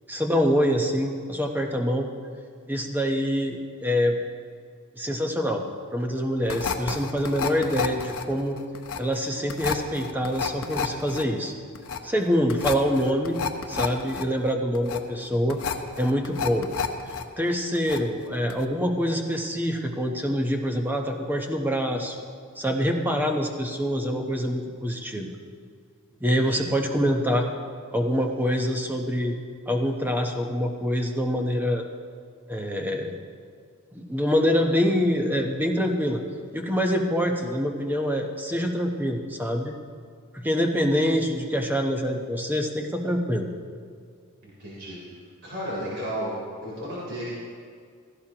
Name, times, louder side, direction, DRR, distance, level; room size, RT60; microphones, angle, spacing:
voice 1, 0.1-2.1 2.7-4.2 5.0-5.6 5.9-8.6 9.0-11.5 12.0-13.4 13.7-15.6 16.0-16.7 17.4-22.2 22.6-25.3 26.2-27.5 27.9-29.4 29.7-31.8 32.5-33.1 33.9-36.2 36.5-39.7 40.4-43.5, equal, 10° right, 3 dB, 0.9 m, -25 dB
sound 1, 6.5-17.2 17.5-18.2 18.5-18.6, left 6 dB, 65° left, 0.8 m, -31 dB
voice 2, 26.3-26.7 44.4-45.0 45.4-46.3 46.6-47.3, equal, 55° right, -7 dB, 3.5 m, -33 dB
16.5 x 14.5 x 2.9 m, 2.1 s
head